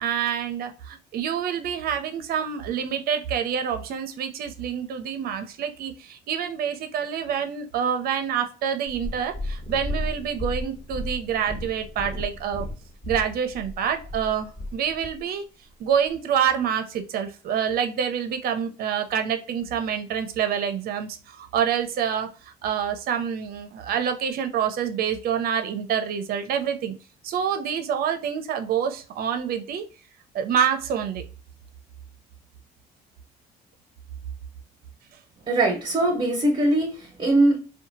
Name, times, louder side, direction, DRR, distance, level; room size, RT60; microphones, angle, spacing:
voice 1, 0.0-12.7 13.1-15.4 15.8-22.3 22.6-26.9 27.2-29.8 30.3-31.2, right 8 dB, 65° right, 8 dB, 0.6 m, -27 dB
Purr, 8.9-15.2 15.9-16.0, left 1 dB, 35° left, 1.2 m, -33 dB
voice 2, 35.5-37.6, right 2 dB, 30° right, 0 dB, 1.0 m, -21 dB
2.8 x 2.3 x 2.6 m, 0.35 s
cardioid pair, 110°, 17 cm